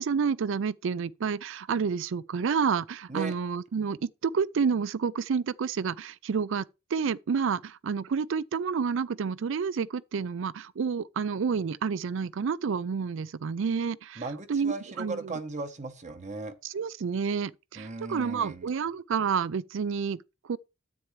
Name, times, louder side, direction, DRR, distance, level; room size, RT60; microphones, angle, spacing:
voice 1, 0.0-6.6 6.9-14.2 14.5-15.4 16.6-20.6, right 6 dB, 65° right, 0.4 m, -29 dB
voice 2, 14.2-16.5 17.7-18.7, right 3 dB, 35° right, 1.0 m, -37 dB
9.8 x 8.4 x 3.2 m
head